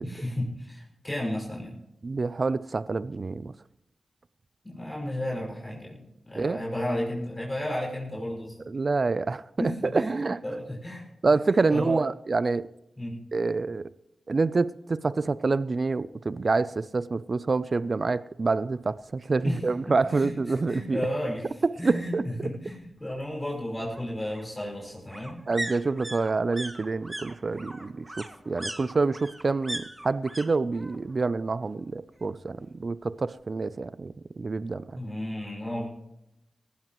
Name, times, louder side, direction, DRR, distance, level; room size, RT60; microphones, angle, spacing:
voice 1, 0.0-1.8 4.6-8.6 9.6-10.2 10.4-11.1 11.7-12.0 13.0-13.2 19.4-19.6 19.9-25.4 35.0-35.9, left 1 dB, 20° left, 6.0 m, -33 dB
voice 2, 2.0-3.5 6.3-6.6 8.7-10.4 11.2-12.7 13.3-13.9 14.3-21.0 21.6-22.5 25.5-35.0, right 3 dB, 55° right, 0.5 m, -27 dB
sound 1, 19.6-19.7 20.0-20.1 20.4-21.4 22.7-30.5 30.7-31.3 31.6-32.6 32.9-33.0, right 1 dB, 20° right, 2.0 m, -40 dB
19.5 x 15.5 x 3.1 m
cardioid pair, 55°, 0 cm